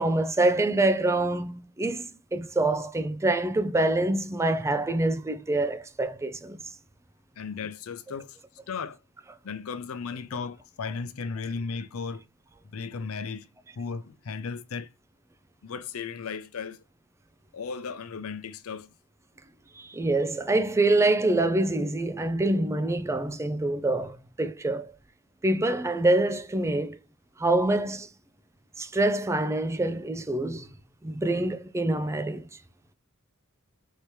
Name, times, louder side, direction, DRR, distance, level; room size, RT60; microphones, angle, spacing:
voice 1, 0.0-6.6 19.8-24.9 25.4-27.0 27.4-28.1 28.8-30.7 31.0-32.5, right 2 dB, 15° right, 0.3 m, -25 dB
voice 2, 7.4-8.4 8.7-9.0 9.4-12.3 12.7-13.5 13.8-14.9 15.6-16.8 17.5-18.9, left 5 dB, 75° left, 0.5 m, -35 dB
4.7 x 2.8 x 3.1 m
head